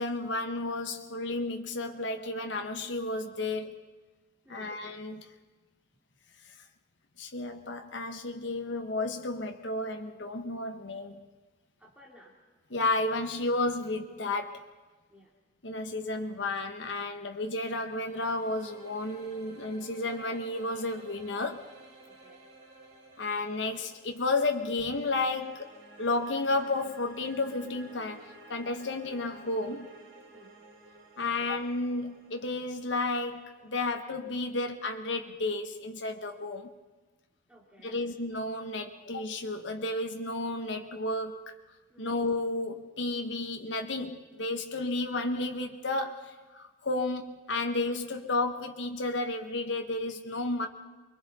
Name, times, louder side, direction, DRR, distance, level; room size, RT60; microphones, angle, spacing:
voice 1, 0.0-3.8 4.5-5.3 7.2-11.2 12.7-14.7 15.6-21.7 23.2-25.7 26.0-29.9 31.2-36.7 37.8-41.5 42.0-50.7, left 2 dB, 80° left, 1.3 m, -32 dB
voice 2, 11.8-12.4 15.1-15.3 22.0-22.4 30.3-30.5 37.5-38.1 41.9-42.1, equal, 5° right, 2.8 m, -56 dB
sound 1, 17.3-34.3, right 2 dB, 70° right, 6.1 m, -54 dB
28.5 x 22.5 x 4.2 m
head